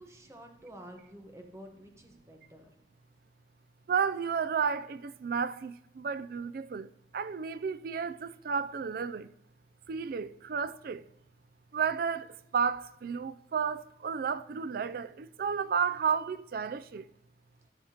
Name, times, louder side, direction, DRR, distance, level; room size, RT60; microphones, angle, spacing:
voice 1, 0.0-2.7, right 1 dB, 15° right, 1.1 m, -50 dB
voice 2, 3.9-6.9 7.1-9.3 9.9-11.0 11.7-17.0, right 6 dB, 55° right, 0.4 m, -32 dB
13.0 x 5.8 x 2.9 m
head